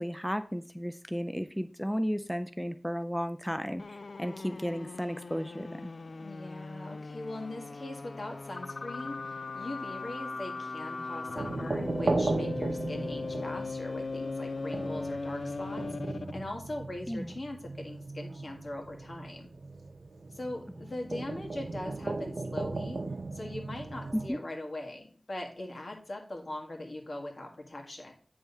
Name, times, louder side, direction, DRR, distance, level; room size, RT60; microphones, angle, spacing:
voice 1, 0.0-5.9 17.1-17.3 20.8-21.4 24.1-24.4, equal, 5° left, 10 dB, 0.4 m, -34 dB
sound 1, 3.8-16.5, left 3 dB, 85° left, 0.3 m, -38 dB
voice 2, 6.2-19.5 20.3-23.0 23.3-28.1, left 1 dB, 60° left, 1 dB, 1.8 m, -41 dB
sound 2, 11.3-24.3, right 3 dB, 85° right, 0.7 m, -36 dB
8.8 x 3.5 x 5.4 m, 0.44 s
wide cardioid pair, 65°, 0 cm